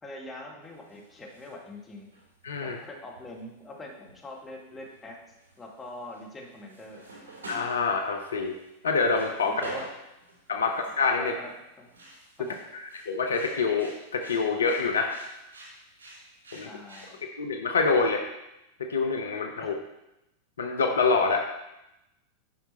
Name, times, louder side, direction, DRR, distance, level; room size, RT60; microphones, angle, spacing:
voice 1, 0.0-2.1 2.6-5.2 5.6-7.0 9.4-9.9 11.2-11.9 12.4-12.6 16.6-17.2 19.6-19.8, left 2 dB, 15° left, -2 dB, 2.0 m, -43 dB
sound 1, 0.6-1.5 1.9-4.3 4.7-5.0 5.3-11.1 11.5-17.2, right 2 dB, 65° right, 3.0 m, -46 dB
voice 2, 2.4-2.8 7.5-8.5 8.8-9.5 10.5-11.3 13.1-15.1 16.5-16.7 17.4-18.2 18.9-19.7 20.6-21.5, left 4 dB, 70° left, 3 dB, 0.8 m, -26 dB
9.6 x 5.9 x 4.4 m, 0.91 s
figure-of-eight pair, 90°, 0 cm